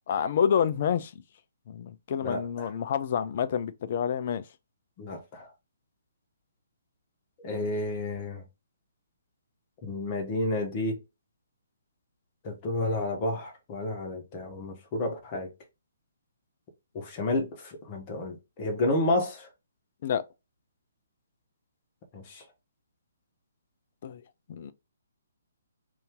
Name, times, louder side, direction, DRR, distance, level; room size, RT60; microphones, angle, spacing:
voice 1, 0.1-1.1 1.7-4.4 20.0-20.3 24.0-24.2 24.5-24.7, left 8 dB, 45° left, 0.4 m, -28 dB
voice 2, 5.0-5.5 7.4-8.4 9.8-11.0 12.4-15.5 16.9-19.5 22.1-22.4, left 2 dB, 30° left, 1.1 m, -30 dB
2.8 x 2.6 x 3.6 m
figure-of-eight pair, 135°, 0 cm